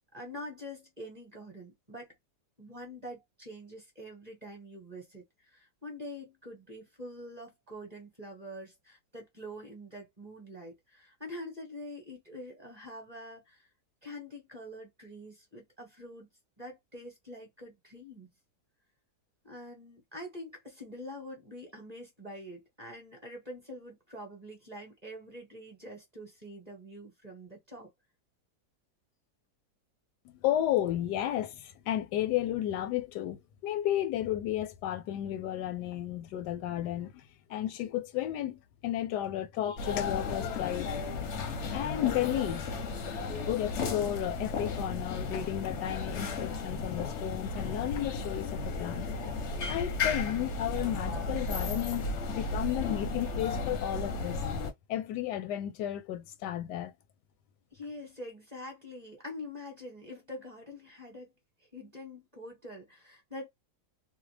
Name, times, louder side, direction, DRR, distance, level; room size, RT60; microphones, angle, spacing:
voice 1, 0.1-2.1 2.6-13.7 14.0-16.3 16.6-18.3 19.4-27.9 57.7-61.3 61.7-63.5, left 1 dB, 30° right, 1.0 m, -45 dB
voice 2, 30.2-37.2 37.5-40.9 41.7-42.7 43.4-49.1 49.7-52.0 52.4-54.4 54.9-56.9, left 12 dB, 85° left, 1.2 m, -33 dB
sound 1, 39.8-54.7, left 4 dB, 60° left, 0.7 m, -34 dB
2.7 x 2.1 x 3.2 m
omnidirectional pair, 1.7 m